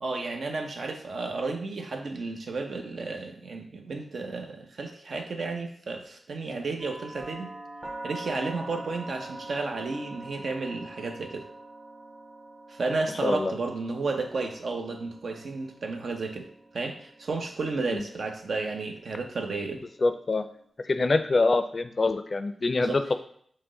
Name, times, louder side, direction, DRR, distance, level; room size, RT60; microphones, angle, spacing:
voice 1, 0.0-7.5 8.0-11.4 12.7-16.5 16.7-19.8 22.8-23.0, right 3 dB, 70° right, 4 dB, 0.7 m, -32 dB
sound 1, 6.8-20.7, right 2 dB, 25° right, 1.3 m, -45 dB
voice 2, 13.2-13.5 17.9-18.0 20.0-20.5 20.9-23.1, left 3 dB, 50° left, 9 dB, 0.4 m, -25 dB
5.8 x 2.1 x 3.7 m, 0.64 s
cardioid pair, 50°, 0 cm